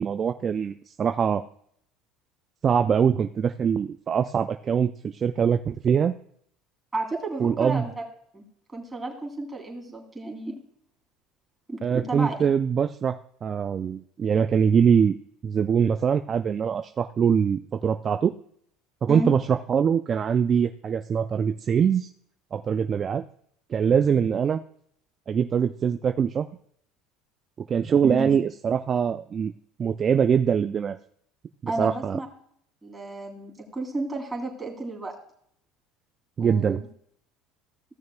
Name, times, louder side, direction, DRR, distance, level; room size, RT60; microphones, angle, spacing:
voice 1, 0.0-1.4 2.6-6.2 7.4-7.8 11.8-13.1 13.4-15.2 15.4-18.3 19.0-22.1 22.5-23.2 23.7-24.6 25.3-26.5 27.7-29.5 29.8-30.9 31.6-32.2 36.4-36.8, right 7 dB, 35° right, 8 dB, 0.4 m, -23 dB
voice 2, 6.9-7.9 8.3-8.4 8.7-10.6 11.7-12.3 19.1-19.3 28.0-28.4 31.7-32.3 32.8-35.2 36.4-36.9, right 2 dB, 15° right, -1 dB, 2.8 m, -32 dB
16.0 x 6.4 x 2.3 m, 0.66 s
supercardioid pair, 95°, 0 cm